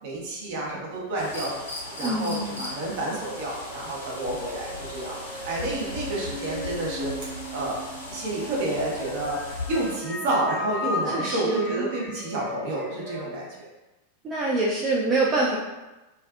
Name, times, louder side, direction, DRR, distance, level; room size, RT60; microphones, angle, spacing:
voice 1, 0.0-1.5 1.9-7.7 8.1-13.7, right 2 dB, 50° right, -4 dB, 0.7 m, -30 dB
sound 1, 1.1-10.0, left 2 dB, 75° left, 0.7 m, -38 dB
voice 2, 2.0-2.7 11.1-11.9 14.2-15.6, right 2 dB, 25° right, -4 dB, 0.3 m, -25 dB
sound 2, 3.7-13.3, left 2 dB, 20° left, 0.7 m, -37 dB
2.5 x 2.3 x 2.3 m, 1.1 s
figure-of-eight pair, 90°, 0 cm